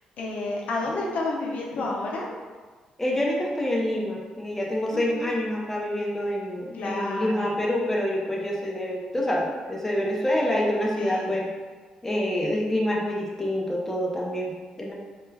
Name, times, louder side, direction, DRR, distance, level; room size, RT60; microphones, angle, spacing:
voice 1, 0.2-2.3 4.9-5.3 6.7-7.5 11.0-11.4, left 2 dB, 70° left, -2 dB, 0.5 m, -30 dB
voice 2, 3.0-11.5 12.0-14.9, left 1 dB, 10° left, -3 dB, 0.5 m, -27 dB
2.3 x 2.1 x 3.2 m, 1.4 s
cardioid pair, 85°, 2 cm